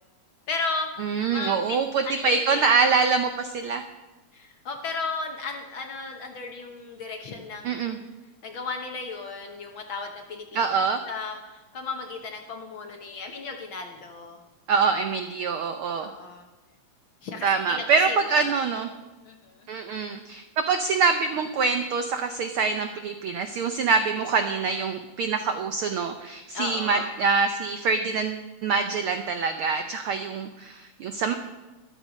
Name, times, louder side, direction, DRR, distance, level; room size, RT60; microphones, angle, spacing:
voice 1, 0.5-0.9 1.3-2.7 4.3-8.0 8.4-14.4 16.0-16.4 17.2-18.6 19.2-19.5 26.5-27.1, left 4 dB, 55° left, 3 dB, 1.5 m, -35 dB
voice 2, 1.0-3.8 7.6-8.0 10.5-11.0 14.7-16.1 17.4-18.9 19.7-31.3, right 5 dB, 85° right, 7 dB, 1.2 m, -25 dB
13.0 x 12.0 x 5.2 m, 1.1 s
omnidirectional pair, 3.3 m